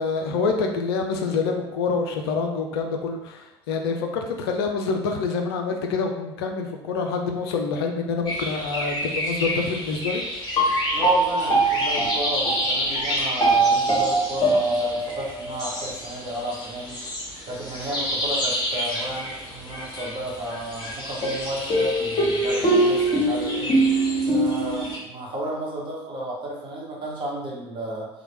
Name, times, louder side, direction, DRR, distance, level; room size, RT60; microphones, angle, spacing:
voice 1, 0.0-10.2, left 4 dB, 65° left, 3 dB, 0.4 m, -26 dB
sound 1, 8.3-25.0, right 1 dB, 30° left, 1.0 m, -24 dB
voice 2, 10.9-28.1, equal, 35° right, -4 dB, 1.0 m, -33 dB
2.9 x 2.2 x 2.9 m, 0.92 s
figure-of-eight pair, 65°, 14 cm